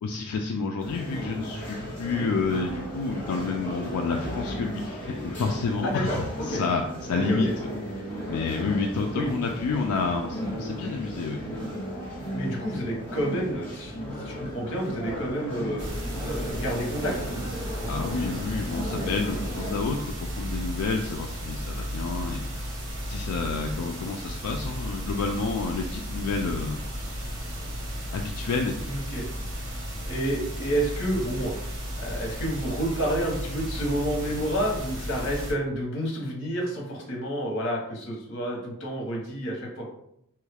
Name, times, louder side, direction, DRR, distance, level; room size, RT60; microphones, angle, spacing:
voice 1, 0.0-7.5 8.3-11.4 17.9-22.6 23.1-26.8 28.1-28.8, left 4 dB, 85° left, 2 dB, 0.3 m, -29 dB
sound 1, 0.8-19.7, equal, 10° left, 1.1 m, -35 dB
voice 2, 5.8-6.6 7.1-7.5 9.1-9.3 12.3-15.9 16.2-17.1 28.9-29.3 30.1-31.6 32.0-39.8, right 1 dB, 60° left, -1 dB, 1.0 m, -29 dB
sound 2, 15.8-35.5, equal, 85° right, 1.0 m, -34 dB
3.1 x 2.3 x 3.3 m, 0.74 s
head